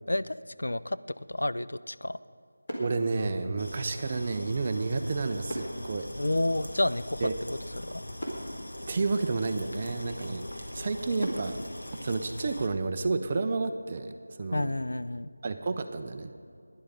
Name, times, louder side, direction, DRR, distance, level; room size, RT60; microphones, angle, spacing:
voice 1, 0.1-2.2 6.1-8.0 14.5-15.3, left 1 dB, 90° left, 14 dB, 0.4 m, -30 dB
sound 1, 2.3-2.4 2.6-4.1 5.5-7.4 7.8-7.9 8.2-9.8 10.3-10.4 11.2-13.1 13.4-13.7, equal, 15° left, 2.1 m, -41 dB
voice 2, 2.8-6.1 7.2-7.3 8.9-10.4 10.7-11.6 12.0-14.8 15.4-16.3, right 3 dB, 20° right, 7 dB, 0.4 m, -30 dB
sound 2, 3.6-12.7, left 1 dB, 70° left, 1.4 m, -42 dB
12.0 x 10.5 x 5.2 m, 2.4 s
figure-of-eight pair, 180°, 0 cm